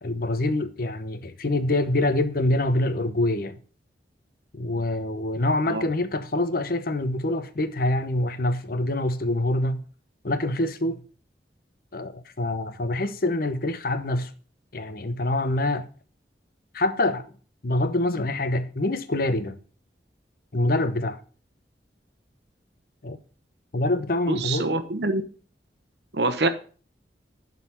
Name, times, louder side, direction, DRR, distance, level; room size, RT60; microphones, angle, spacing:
voice 1, 0.0-3.6 4.5-9.8 10.2-11.0 11.9-14.3 14.7-15.9 16.7-17.3 17.6-19.6 20.5-21.2 23.0-23.2 23.7-24.7, left 1 dB, 55° left, 0.9 m, -25 dB
voice 2, 24.3-25.2 26.1-26.5, right 2 dB, 70° right, 1.0 m, -25 dB
11.0 x 4.1 x 5.6 m
head